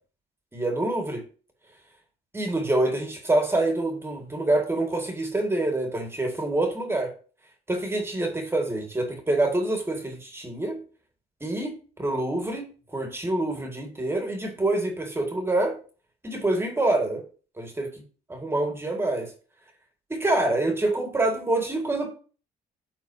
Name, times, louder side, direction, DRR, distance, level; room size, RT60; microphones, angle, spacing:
voice 1, 0.5-1.2 2.3-7.1 7.7-10.8 11.4-12.6 12.9-15.8 16.2-17.2 17.6-18.0 18.3-19.3 20.1-22.1, right 2 dB, 15° right, 2.0 m, -26 dB
13.0 x 4.3 x 2.8 m
cardioid pair, 110°, 17 cm